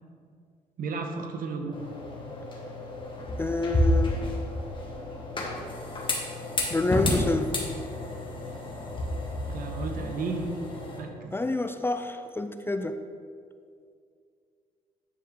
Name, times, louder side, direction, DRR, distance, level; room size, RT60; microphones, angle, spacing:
voice 1, 0.8-1.8 9.5-10.5 11.0-11.3, right 4 dB, 65° right, 4 dB, 0.9 m, -33 dB
sound 1, 1.7-11.0, left 1 dB, 30° left, 1.6 m, -31 dB
voice 2, 3.4-4.2 6.7-7.6 11.3-13.0, left 2 dB, 15° left, 8 dB, 0.4 m, -28 dB
10.0 x 4.6 x 3.8 m, 2.3 s
supercardioid pair, 70°, 16 cm